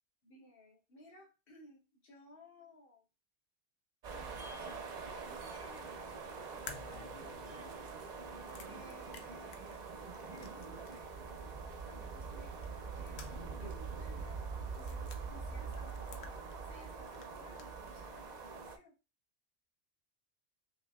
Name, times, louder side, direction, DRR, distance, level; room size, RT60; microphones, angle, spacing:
voice 1, 0.2-3.0 4.1-6.5 6.9-7.9 8.6-9.9 10.3-11.3 11.5-12.5 12.9-13.2 13.6-18.9, left 1 dB, 50° left, -2 dB, 1.4 m, -59 dB
sound 1, 4.0-18.8, right 4 dB, 50° right, 0.5 m, -44 dB
sound 2, 6.7-11.1 11.4-11.5 12.6-13.6 13.9-14.0 14.7-15.2 15.7-16.8 17.1-18.0, left 6 dB, 70° left, 0.8 m, -53 dB
5.3 x 2.9 x 2.2 m, 0.28 s
omnidirectional pair, 1.2 m